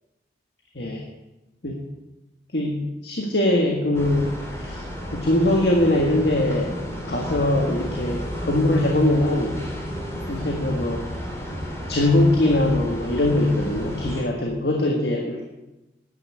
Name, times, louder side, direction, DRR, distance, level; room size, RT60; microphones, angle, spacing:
voice 1, 2.5-4.8 5.1-6.8 7.0-9.6 10.3-11.0 11.9-15.4, left 1 dB, 65° left, 0 dB, 1.7 m, -22 dB
sound 1, 3.9-14.2, equal, 15° left, 2.5 m, -32 dB
10.0 x 10.0 x 8.4 m, 1.0 s
head